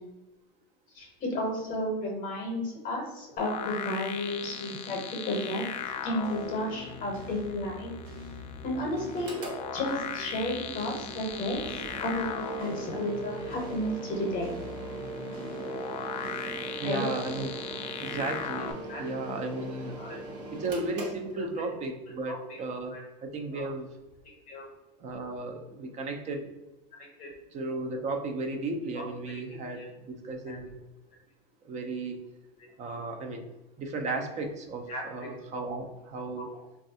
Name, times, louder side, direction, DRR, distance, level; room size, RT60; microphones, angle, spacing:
voice 1, 0.9-5.6 6.0-7.9 8.6-9.4 9.7-11.6 12.0-14.5 16.8-17.1 18.9-19.0 20.0-20.2 21.3-21.7 22.3-22.6 22.9-23.0 23.5-23.7 24.5-24.7 27.0-27.3 28.9-29.4 29.8-29.9 30.5-30.6 34.9-35.3 36.4-36.6, left 1 dB, 40° left, 0 dB, 0.7 m, -33 dB
sound 1, 3.4-18.7, left 8 dB, 85° left, 0.4 m, -39 dB
sound 2, 4.4-20.7, right 2 dB, 70° right, 0.7 m, -48 dB
Mechanical fan, 9.1-21.9, right 3 dB, 55° right, 1.0 m, -41 dB
voice 2, 16.8-17.5 18.0-19.9 20.5-23.0 23.2-23.9 25.0-26.5 27.5-30.8 31.7-32.2 32.8-33.4 33.8-36.5, right 2 dB, 35° right, 5 dB, 0.4 m, -34 dB
3.2 x 2.3 x 2.7 m, 1.1 s
supercardioid pair, 120°, 21 cm